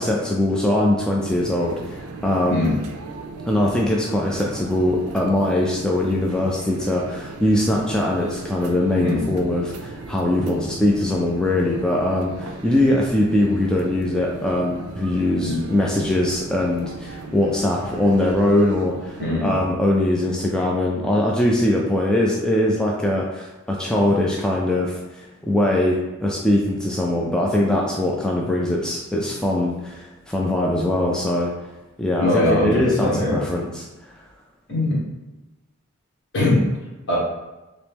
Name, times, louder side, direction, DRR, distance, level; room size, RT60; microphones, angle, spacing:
voice 1, 0.0-2.6 3.5-31.5 32.0-34.1, left 1 dB, 5° left, -3 dB, 0.3 m, -21 dB
sound 1, 1.2-19.5, right 3 dB, 75° right, 0.4 m, -37 dB
voice 2, 19.2-19.5 32.2-33.4 34.7-35.0 36.3-36.6 37.1-37.2, left 1 dB, 55° left, -5 dB, 1.3 m, -21 dB
3.0 x 2.9 x 3.4 m, 1.1 s
head